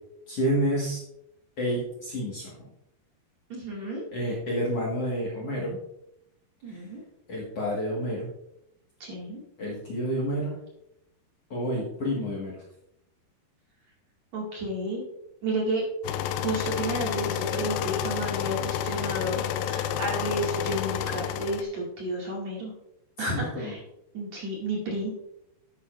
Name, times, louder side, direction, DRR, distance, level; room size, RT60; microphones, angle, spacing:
voice 1, 0.3-1.0 1.6-2.6 4.1-5.8 6.7-6.8 7.3-8.3 9.6-10.6 11.5-12.6 23.2-23.7, equal, 50° left, -5 dB, 2.2 m, -29 dB
voice 2, 3.5-4.1 6.6-7.0 9.0-9.4 14.3-15.0 15.4-15.8 16.4-22.7 23.2-23.8 24.1-25.1, right 1 dB, 50° right, -3 dB, 3.1 m, -31 dB
sound 1, 16.0-21.6, left 10 dB, 80° left, 2.1 m, -30 dB
11.5 x 8.8 x 2.5 m, 0.80 s
omnidirectional pair, 4.7 m